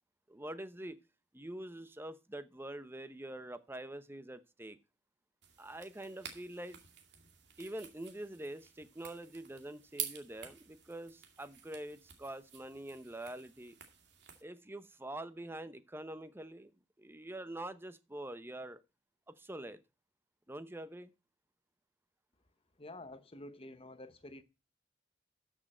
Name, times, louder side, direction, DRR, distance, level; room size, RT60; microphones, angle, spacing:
voice 1, 0.3-1.0 1.3-4.8 5.6-6.8 7.6-13.8 14.4-16.7 17.0-18.8 19.3-19.8 20.5-21.1, right 1 dB, 10° right, 0.8 m, -45 dB
sound 1, 5.4-14.4, right 9 dB, 65° right, 2.2 m, -49 dB
voice 2, 22.8-24.4, left 1 dB, 30° left, 1.0 m, -49 dB
13.0 x 6.3 x 4.4 m
head